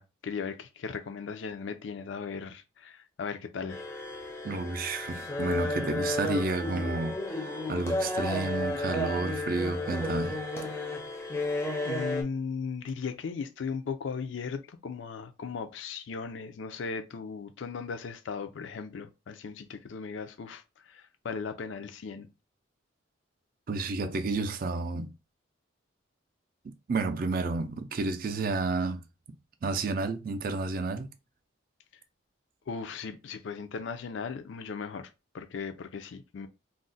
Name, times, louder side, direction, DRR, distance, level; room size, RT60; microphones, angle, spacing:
voice 1, 0.0-3.8 11.8-22.3 32.7-36.5, left 5 dB, 75° left, 0.4 m, -37 dB
sound 1, 3.7-12.2, left 2 dB, 15° left, 0.5 m, -33 dB
voice 2, 4.4-10.4 23.7-25.1 26.9-29.0 29.6-31.1, right 3 dB, 45° right, 0.4 m, -31 dB
2.3 x 2.1 x 3.8 m
head